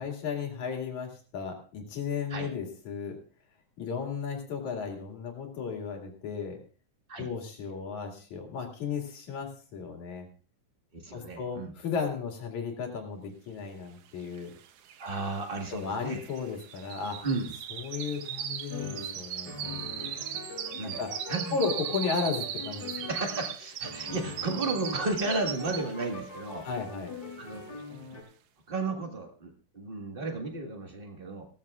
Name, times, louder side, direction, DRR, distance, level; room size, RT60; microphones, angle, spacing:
voice 1, 0.0-3.2 3.8-6.6 7.2-10.3 11.1-14.5 15.7-17.2 17.7-19.8 21.0-21.1 21.5-22.9 26.6-27.1, left 5 dB, 70° left, 1 dB, 3.8 m, -34 dB
voice 2, 10.9-11.7 15.0-16.2 17.2-17.5 20.8-21.0 21.3-21.6 23.1-26.7 27.4-27.7 28.7-31.5, right 3 dB, 25° right, 3 dB, 1.3 m, -33 dB
sound 1, 14.4-14.5 14.7-26.1 26.5-26.8 27.3-27.4, right 9 dB, 65° right, 1.6 m, -38 dB
sound 2, 18.7-23.5 23.8-28.2, left 3 dB, 35° left, 4.9 m, -42 dB
18.5 x 14.0 x 2.5 m, 0.39 s
omnidirectional pair, 3.5 m